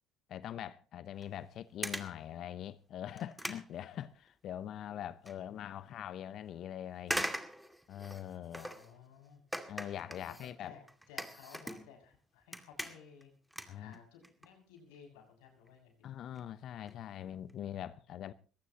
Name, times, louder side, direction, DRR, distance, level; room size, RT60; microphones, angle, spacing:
voice 1, 0.3-7.4 7.9-8.7 9.7-10.7 13.7-13.9 16.0-18.3, left 10 dB, 55° left, 0.8 m, -43 dB
sound 1, 1.2-1.4 1.8-2.2 2.7-2.8 3.2-4.5 4.9-5.4 5.8-5.9 7.0-9.0 9.5-12.2 12.4-13.2 13.5-14.5 14.8-15.0 15.7-15.8 16.0-16.1 16.4-16.5 16.7-17.0 17.4-17.5 17.8-17.9, equal, 5° right, 2.3 m, -41 dB
voice 2, 8.5-9.4 10.2-13.3 13.7-16.1, left 7 dB, 75° left, 6.5 m, -56 dB
21.0 x 17.5 x 2.9 m
hypercardioid pair, 65°, 0 cm